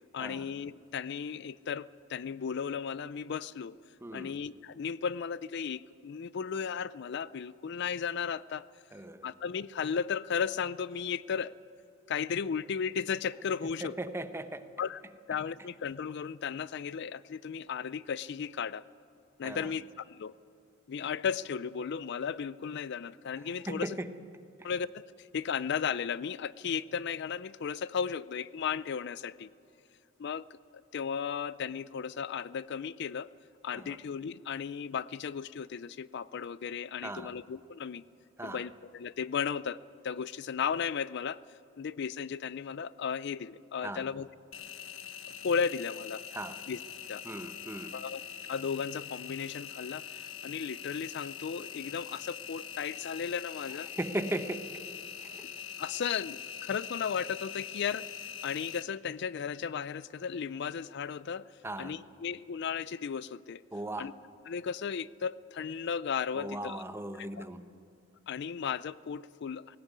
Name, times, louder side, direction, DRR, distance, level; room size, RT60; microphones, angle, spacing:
voice 1, 0.1-3.8 4.1-8.7 9.2-11.5 12.1-13.9 14.8-15.0 15.3-18.8 19.4-20.3 20.9-24.0 24.6-29.5 30.2-30.5 30.9-33.3 33.6-38.0 38.4-41.4 41.8-44.3 45.4-46.2 46.7-46.8 47.1-47.2 47.9-48.2 48.5-53.9 55.8-58.1 58.4-61.5 61.8-63.6 64.0-64.1 64.5-66.8 67.2-67.4 68.3-69.8, left 6 dB, 55° left, 18 dB, 0.4 m, -35 dB
voice 2, 4.0-4.4 8.9-9.3 13.8-14.7 19.4-19.7 23.7-24.1 24.6-24.7 33.7-34.0 37.0-37.3 38.4-38.7 43.8-44.1 46.3-46.6 47.2-48.0 53.9-54.8 55.2-55.4 61.6-62.0 63.7-64.1 66.4-67.7, right 1 dB, 10° right, 10 dB, 0.9 m, -38 dB
Engine, 44.5-58.8, left 8 dB, 80° left, 1.2 m, -43 dB
18.0 x 17.5 x 9.6 m, 2.6 s
head